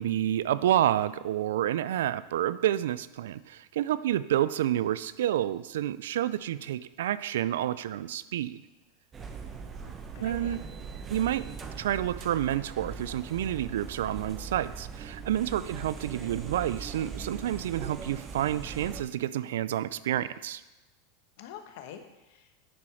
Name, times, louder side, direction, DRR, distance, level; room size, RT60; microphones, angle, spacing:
voice 1, 0.0-8.6 10.2-10.6 11.1-11.4 11.8-20.6, right 12 dB, 80° right, 16 dB, 0.3 m, -29 dB
sound 1, 9.1-19.0, right 5 dB, 25° right, 0.8 m, -41 dB
voice 2, 9.8-10.6 15.6-15.8 21.4-22.5, left 9 dB, 70° left, 7 dB, 1.0 m, -46 dB
10.0 x 4.3 x 4.9 m, 1.0 s
hypercardioid pair, 110°, 0 cm